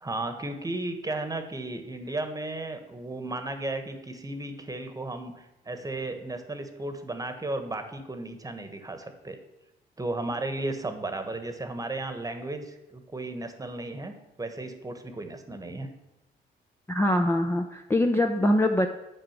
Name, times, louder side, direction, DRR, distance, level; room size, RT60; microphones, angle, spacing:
voice 1, 0.0-9.4 10.0-15.9, right 2 dB, 15° right, 7 dB, 1.2 m, -34 dB
voice 2, 16.9-18.9, left 1 dB, 10° left, 4 dB, 0.6 m, -23 dB
9.0 x 5.0 x 7.2 m, 0.96 s
cardioid pair, 90°, 20 cm